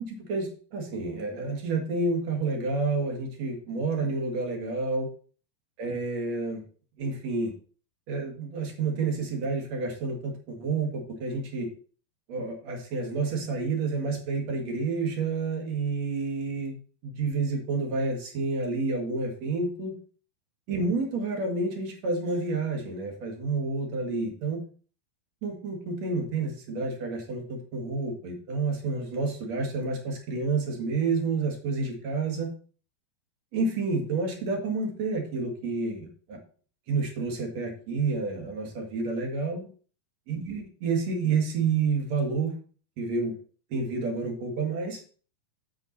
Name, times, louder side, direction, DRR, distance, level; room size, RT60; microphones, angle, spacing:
voice 1, 0.0-5.1 5.8-6.6 7.0-7.5 8.1-11.7 12.3-16.8 17.0-20.0 20.7-24.6 25.4-32.5 33.5-36.4 36.9-39.6 40.3-42.5 43.0-43.3 43.7-45.0, right 3 dB, 50° right, 2 dB, 2.6 m, -29 dB
7.8 x 7.5 x 4.1 m, 0.41 s
omnidirectional pair, 4.6 m